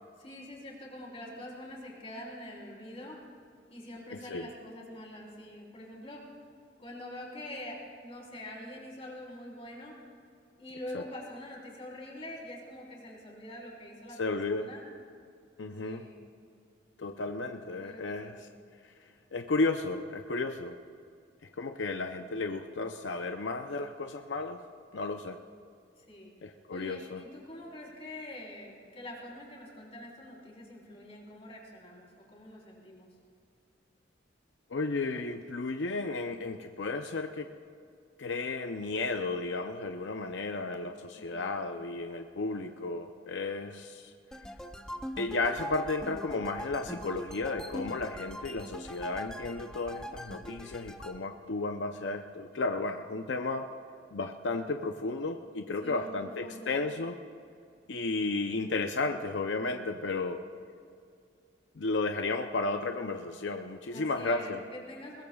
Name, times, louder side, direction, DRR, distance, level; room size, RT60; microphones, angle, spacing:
voice 1, 0.2-3.2 3.7-6.3 6.8-10.0 10.6-14.8 15.8-16.2 17.8-18.5 26.0-26.3 26.7-33.1 41.2-41.5 55.8-56.7 63.9-65.2, left 1 dB, 35° left, -2 dB, 3.9 m, -45 dB
voice 2, 14.2-14.7 15.6-16.1 17.0-18.5 19.3-20.8 21.5-24.6 24.9-25.4 26.4-27.2 34.7-37.5 38.2-44.1 45.2-53.7 54.1-57.2 57.9-60.4 61.7-64.6, left 3 dB, 85° left, 5 dB, 0.6 m, -33 dB
sound 1, 44.3-51.2, equal, 5° left, 0.7 m, -42 dB
21.5 x 20.5 x 2.4 m, 2.4 s
head